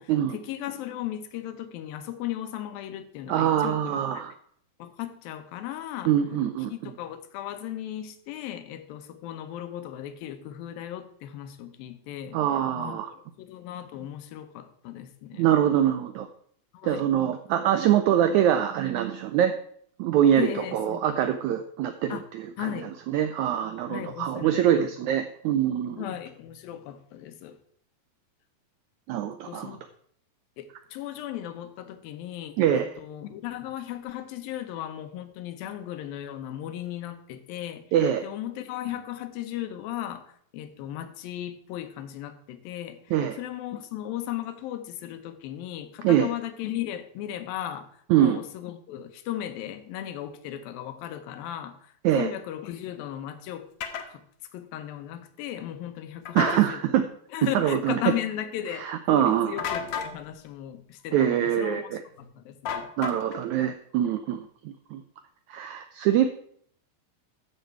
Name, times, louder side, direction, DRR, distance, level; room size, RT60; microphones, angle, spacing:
voice 1, 0.0-4.0 4.8-6.1 6.7-12.4 12.8-15.4 16.7-17.1 20.4-21.0 22.1-22.2 22.6-23.0 23.9-24.9 26.0-27.6 29.3-29.8 30.6-37.8 38.2-53.7 54.1-54.3 54.5-56.9 57.3-62.9, left 12 dB, 85° left, 9 dB, 2.7 m, -36 dB
voice 2, 3.3-4.3 6.0-6.9 12.3-13.1 15.4-16.3 16.8-19.5 20.0-22.7 23.1-26.0 29.1-29.7 32.6-32.9 37.9-38.2 43.1-43.4 46.0-46.3 48.1-48.4 52.0-52.3 56.3-57.1 57.4-58.0 58.7-59.5 61.1-62.0 63.0-65.0 65.5-66.3, right 10 dB, 90° right, 8 dB, 1.6 m, -24 dB
sound 1, 53.8-54.1 56.3-56.6 59.6-60.1 62.7-63.4, left 7 dB, 65° left, 2.0 m, -32 dB
14.0 x 6.6 x 4.6 m, 0.63 s
omnidirectional pair, 4.1 m